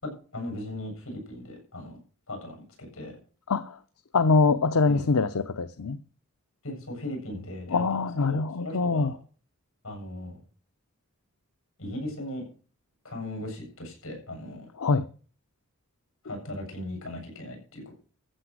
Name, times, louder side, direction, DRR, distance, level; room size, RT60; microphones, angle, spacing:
voice 1, 0.0-2.0 2.3-3.2 4.8-5.0 6.6-8.0 8.3-9.2 9.8-10.4 11.8-12.4 13.0-14.7 16.2-17.9, left 1 dB, 70° left, 7.5 m, -38 dB
voice 2, 3.5-3.8 4.1-6.0 7.7-9.1 14.8-15.1, left 4 dB, 90° left, 0.7 m, -24 dB
14.5 x 7.9 x 6.2 m
head